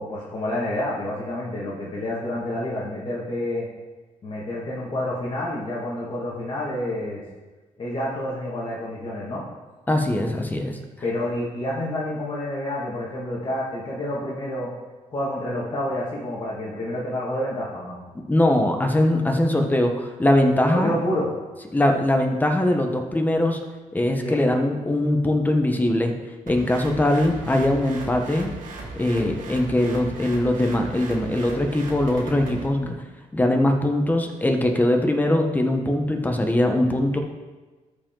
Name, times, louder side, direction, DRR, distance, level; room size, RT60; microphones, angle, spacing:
voice 1, 0.0-3.7 4.2-7.2 7.8-9.4 11.0-14.7 15.1-18.0 20.7-21.3 24.2-24.4 29.1-29.3, left 1 dB, 40° left, -7 dB, 2.0 m, -28 dB
voice 2, 9.9-10.8 18.3-20.9 21.7-23.6 23.9-26.1 26.5-28.5 28.9-32.9 33.3-37.2, left 1 dB, 15° left, 4 dB, 1.1 m, -21 dB
sound 1, 26.5-32.7, right 2 dB, 80° right, 1.9 m, -37 dB
13.5 x 5.1 x 3.9 m, 1.2 s
cardioid pair, 115°, 14 cm